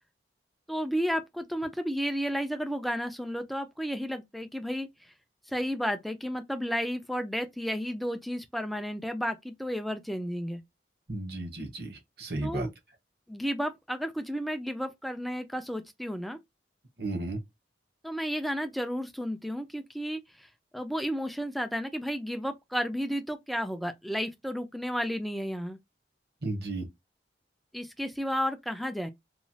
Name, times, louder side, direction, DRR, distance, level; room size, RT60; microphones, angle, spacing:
voice 1, 0.7-5.1 5.5-10.6 12.4-12.7 13.3-16.4 18.0-25.8 27.7-29.1, equal, ahead, 0.3 m, -32 dB
voice 2, 11.1-12.7 17.0-17.4 26.4-26.9, right 2 dB, 60° right, 1.0 m, -34 dB
3.0 x 2.3 x 2.6 m
head